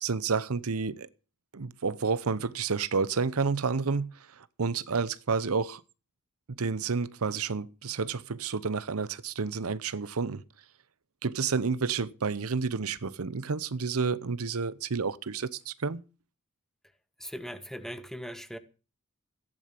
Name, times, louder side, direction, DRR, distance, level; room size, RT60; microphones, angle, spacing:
voice 1, 0.0-1.1 1.5-5.8 6.5-10.4 11.2-16.0, right 5 dB, 85° right, 0.8 m, -30 dB
voice 2, 17.2-18.6, equal, ahead, 1.3 m, -39 dB
16.0 x 10.5 x 5.9 m
head